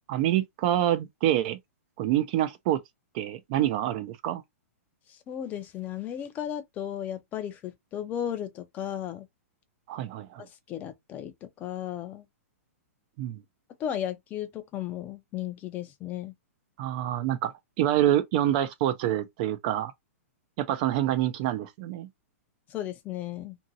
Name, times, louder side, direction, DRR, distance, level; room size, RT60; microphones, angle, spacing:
voice 1, 0.1-1.6 2.0-2.8 3.1-4.4 9.9-10.5 13.2-13.4 16.8-19.9 20.6-22.1, right 12 dB, 35° right, 0.4 m, -26 dB
voice 2, 5.3-9.3 10.7-12.3 13.8-16.3 22.7-23.6, left 10 dB, 20° left, 0.5 m, -35 dB
2.8 x 2.7 x 2.6 m
hypercardioid pair, 155°, 8 cm